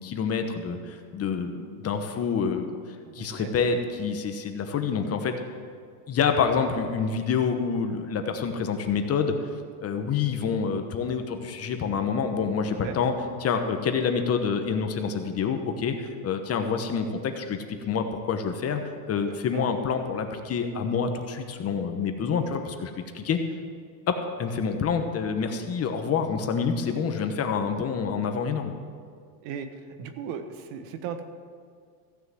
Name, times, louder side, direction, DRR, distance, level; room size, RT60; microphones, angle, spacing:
voice 1, 0.0-2.7 3.1-5.4 6.1-9.3 9.8-13.1 13.4-18.8 19.1-23.4 24.1-28.7, left 6 dB, 30° left, 6 dB, 1.1 m, -27 dB
voice 2, 3.1-3.5 12.7-13.0 19.5-19.7 29.4-29.7 30.0-31.2, right 7 dB, 70° right, 8 dB, 1.3 m, -36 dB
15.0 x 6.5 x 7.6 m, 2.1 s
supercardioid pair, 140°, 48 cm